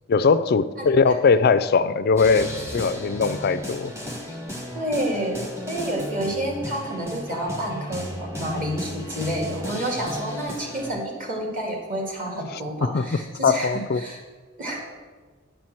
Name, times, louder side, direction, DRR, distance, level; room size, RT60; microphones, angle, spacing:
voice 1, 0.1-3.9 12.8-13.0 13.4-14.0, left 5 dB, 50° left, 13 dB, 0.4 m, -20 dB
sound 1, 2.2-10.9, equal, 15° right, 1.2 m, -35 dB
voice 2, 4.7-13.7 14.0-14.2 14.6-14.8, right 1 dB, 40° right, 0 dB, 2.1 m, -29 dB
10.0 x 4.4 x 7.7 m, 1.4 s
head